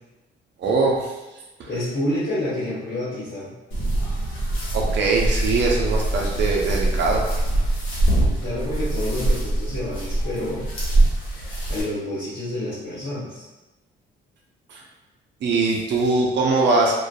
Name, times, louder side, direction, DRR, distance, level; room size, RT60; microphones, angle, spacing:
voice 1, 0.6-1.1 4.7-7.2 14.7-14.8 15.4-16.9, right 3 dB, 65° right, -1 dB, 0.5 m, -21 dB
voice 2, 1.7-3.5 8.4-10.7 11.7-13.4, left 1 dB, 55° left, -10 dB, 1.0 m, -28 dB
sound 1, 3.7-11.8, right 1 dB, 85° left, 0.8 m, -23 dB
2.5 x 2.2 x 2.2 m, 1.1 s
cardioid pair, 90°, 20 cm